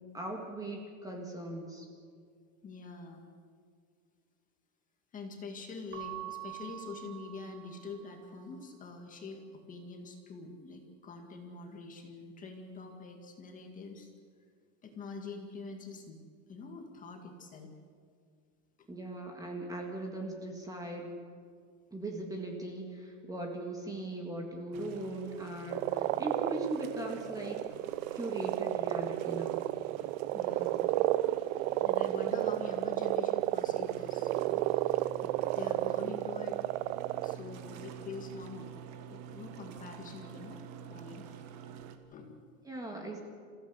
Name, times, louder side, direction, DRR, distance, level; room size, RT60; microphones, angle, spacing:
voice 1, 0.1-1.9 18.9-21.1 21.9-27.6 28.1-29.6 42.7-43.2, right 1 dB, 10° right, 1 dB, 1.9 m, -39 dB
voice 2, 2.6-3.3 5.1-14.1 14.8-16.2 16.5-17.7 18.8-18.9 30.3-30.9 31.8-36.6 37.2-38.7 39.1-41.2 42.1-42.5, left 4 dB, 20° left, 3 dB, 2.1 m, -45 dB
Keyboard (musical) / Bell, 5.9-8.3, right 16 dB, 25° right, 1.4 m, -45 dB
sound 1, 24.7-42.0, right 8 dB, 45° right, 1.6 m, -48 dB
sound 2, 25.7-37.4, right 16 dB, 65° right, 0.6 m, -32 dB
27.0 x 15.5 x 8.1 m, 2.1 s
supercardioid pair, 175°, 40 cm